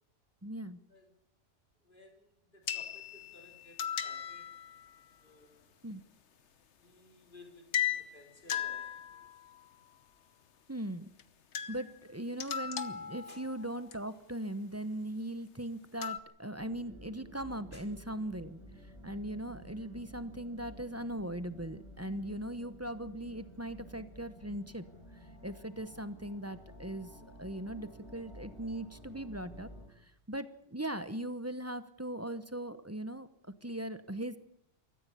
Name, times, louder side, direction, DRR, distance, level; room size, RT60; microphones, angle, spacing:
voice 1, 0.4-0.8 5.8-6.0 10.7-11.1 11.7-18.6 19.0-24.8 25.4-27.1 27.4-29.7 30.0-33.3 33.6-34.4, right 1 dB, 15° right, 12 dB, 0.9 m, -39 dB
voice 2, 1.8-4.5 5.2-5.7 6.8-9.3 13.3-13.4 17.7-17.8, left 2 dB, 40° left, 3 dB, 4.2 m, -58 dB
sound 1, 2.7-5.0 7.7-8.2 8.5-9.6 11.2-11.3 11.5-12.0 12.4-13.9 16.0-16.2, left 9 dB, 65° left, 1.3 m, -37 dB
sound 2, 16.6-29.9, equal, 20° left, 4.9 m, -52 dB
22.5 x 14.5 x 8.5 m, 0.74 s
omnidirectional pair, 1.3 m